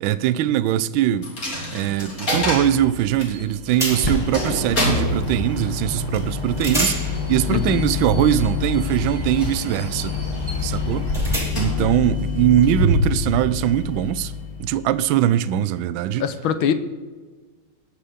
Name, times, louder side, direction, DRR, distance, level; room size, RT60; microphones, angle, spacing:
voice 1, 0.0-1.3 1.7-10.2 10.6-14.3 14.6-16.3, right 11 dB, 75° right, 1.3 m, -21 dB
Coin (dropping), 1.2-15.0, left 3 dB, 40° left, 3.8 m, -27 dB
sound 1, 3.3-3.5 3.8-4.3 6.1-6.3 6.6-11.9, right 1 dB, ahead, 2.5 m, -32 dB
Bird, 3.9-11.3, equal, 15° left, 0.9 m, -30 dB
voice 2, 7.5-7.9 10.9-11.1 11.8-11.9 16.2-16.7, left 8 dB, 70° left, 1.6 m, -24 dB
19.5 x 6.7 x 5.0 m
omnidirectional pair, 2.4 m